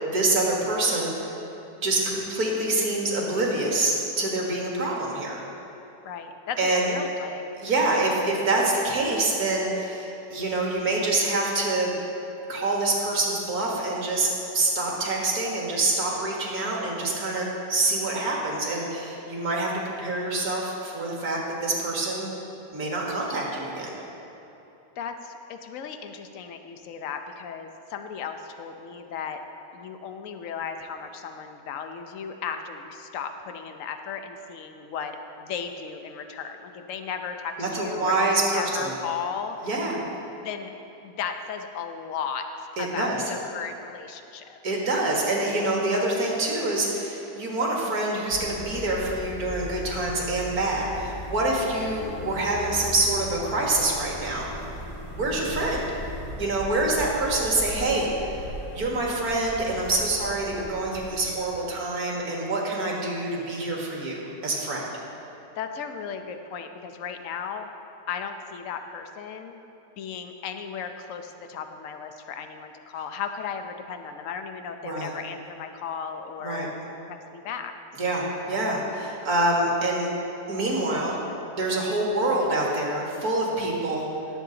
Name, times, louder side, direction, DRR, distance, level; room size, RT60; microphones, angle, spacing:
voice 1, 0.0-1.3 1.8-5.4 6.6-6.9 7.6-12.0 12.5-14.3 14.5-19.7 20.0-22.3 22.7-23.9 37.6-38.8 39.6-40.0 42.8-43.2 44.6-54.5 55.2-55.8 56.4-58.3 58.7-64.9 74.8-75.1 76.4-76.7 78.0-80.1 80.5-81.2 81.6-84.1, right 2 dB, 55° right, -2 dB, 2.2 m, -26 dB
voice 2, 6.0-7.4 25.0-29.4 29.7-39.7 40.4-40.7 41.0-42.5 42.8-44.6 55.5-56.0 65.6-67.7 68.1-69.6 70.0-76.8 77.1-77.7, left 6 dB, 60° left, 7 dB, 0.9 m, -35 dB
sound 1, 48.3-61.4, left 1 dB, 15° left, 1.1 m, -38 dB
17.5 x 7.6 x 3.9 m, 3.0 s
omnidirectional pair, 1.9 m